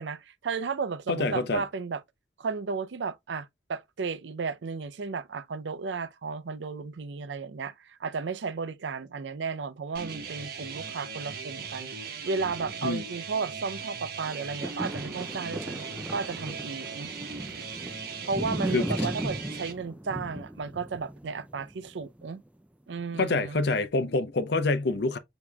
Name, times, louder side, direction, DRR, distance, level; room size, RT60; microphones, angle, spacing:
voice 1, 0.0-2.0 2.4-15.9 16.1-17.1 18.2-22.4 22.9-23.6, right 4 dB, 85° right, 0.5 m, -34 dB
voice 2, 1.1-1.6 12.8-13.0 18.7-19.1 23.1-25.2, left 3 dB, 65° left, 0.6 m, -26 dB
sound 1, 9.9-19.7, right 5 dB, 60° right, 1.0 m, -39 dB
sound 2, 14.2-22.5 23.0-23.1, right 1 dB, 10° right, 0.4 m, -37 dB
6.9 x 2.9 x 2.2 m
head